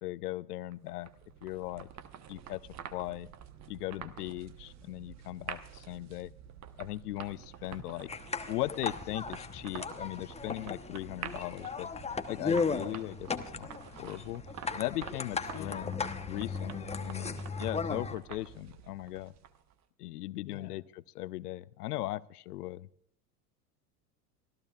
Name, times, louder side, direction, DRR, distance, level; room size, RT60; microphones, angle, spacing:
voice 1, 0.0-1.1 1.4-1.9 2.3-2.6 2.9-3.3 3.7-6.3 6.8-8.1 8.5-11.9 12.3-13.7 14.0-14.4 14.7-16.0 16.3-19.3 20.0-20.8 21.1-22.9, left 16 dB, 75° left, 20 dB, 0.7 m, -38 dB
sound 1, 0.7-19.7, right 9 dB, 35° right, 1.1 m, -48 dB
voice 2, 7.6-8.0 15.5-15.8 20.5-20.7, left 9 dB, 55° left, 3 dB, 1.7 m, -47 dB
sound 2, 8.1-18.1, left 5 dB, 15° left, 1.0 m, -36 dB
24.5 x 14.5 x 2.4 m, 0.70 s
hypercardioid pair, 80°, 47 cm